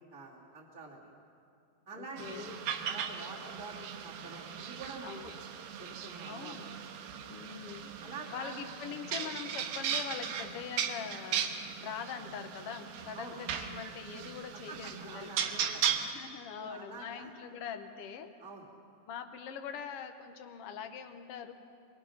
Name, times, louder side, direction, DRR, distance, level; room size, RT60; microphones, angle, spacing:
voice 1, 0.1-1.1 1.9-2.6 2.9-5.3 5.8-6.6 7.5-7.6 8.0-8.6 13.1-13.4 14.5-16.0 16.6-17.3 18.4-18.7, right 3 dB, 10° right, -4 dB, 2.1 m, -47 dB
voice 2, 2.0-2.6 5.0-5.3 6.2-6.7 7.3-11.5 11.8-15.3 16.0-18.3 19.1-21.5, left 7 dB, 75° left, 7 dB, 1.3 m, -43 dB
sound 1, 2.2-16.1, right 8 dB, 85° right, 2.8 m, -37 dB
25.0 x 21.5 x 5.9 m, 2.5 s
omnidirectional pair, 4.1 m